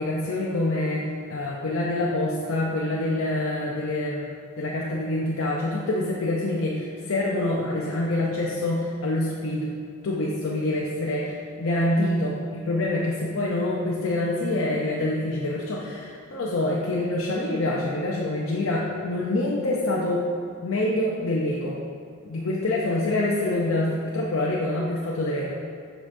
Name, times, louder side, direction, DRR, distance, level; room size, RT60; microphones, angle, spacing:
voice 1, 0.0-9.7 10.0-20.3 20.6-21.8 22.2-25.5, left 1 dB, 90° left, -3 dB, 0.6 m, -26 dB
7.3 x 5.0 x 2.6 m, 2.4 s
head